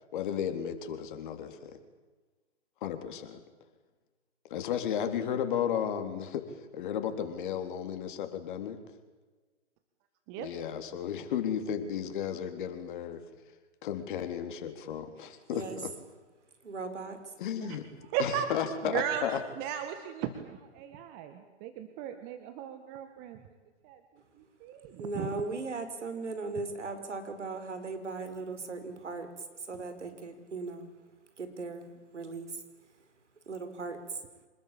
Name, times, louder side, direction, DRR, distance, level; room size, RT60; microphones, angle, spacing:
voice 1, 0.1-1.8 2.8-3.4 4.5-8.8 10.4-13.2 13.8-15.9 17.4-17.9 18.2-19.4, left 8 dB, 45° left, 7 dB, 3.6 m, -34 dB
voice 2, 16.6-17.3 25.0-30.9 31.4-32.6 33.5-34.2, right 3 dB, 80° right, 8 dB, 5.3 m, -38 dB
voice 3, 18.1-18.5 18.9-19.2 19.6-23.4 23.8-24.0 24.6-25.3, right 9 dB, 25° right, 8 dB, 1.9 m, -36 dB
26.5 x 20.5 x 8.8 m, 1.3 s
figure-of-eight pair, 130°, 35 cm